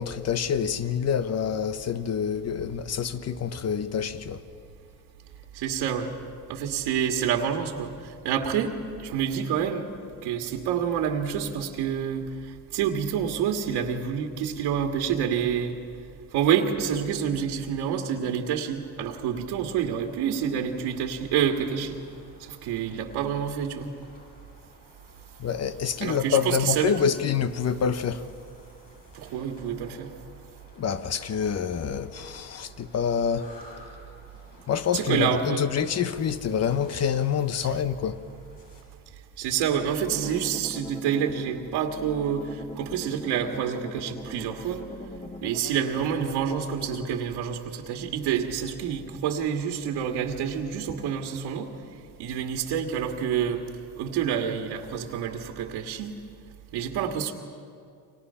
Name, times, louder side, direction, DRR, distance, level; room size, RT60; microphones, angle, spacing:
voice 1, 0.0-4.4 25.4-28.3 30.8-33.5 34.7-38.2, left 7 dB, 40° left, 1.2 m, -27 dB
voice 2, 5.5-6.1 6.5-9.8 10.2-12.3 12.7-15.8 16.3-22.0 22.4-23.9 26.0-27.2 29.1-30.1 34.9-35.6 37.6-37.7 39.4-44.8 45.4-51.7 52.2-53.6 54.0-56.1 56.7-57.3, right 8 dB, 85° right, 2.0 m, -28 dB
sound 1, 20.0-38.8, left 1 dB, 55° left, 7.9 m, -54 dB
sound 2, 40.1-47.2, left 1 dB, 15° left, 1.2 m, -42 dB
29.5 x 25.0 x 5.7 m
cardioid pair, 120°, 39 cm